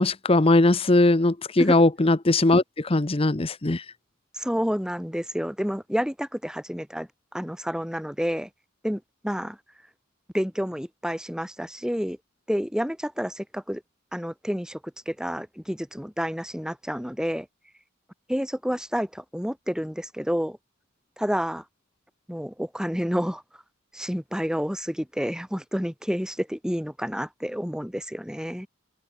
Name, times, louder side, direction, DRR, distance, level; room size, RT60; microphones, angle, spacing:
voice 1, 0.0-3.8, left 2 dB, 25° left, 0.8 m, -20 dB
voice 2, 4.3-8.5 8.8-9.6 10.3-12.2 12.5-13.8 14.1-14.8 15.1-17.5 18.3-20.6 21.2-21.6 22.3-23.4 23.9-28.7, equal, 5° right, 4.5 m, -29 dB
head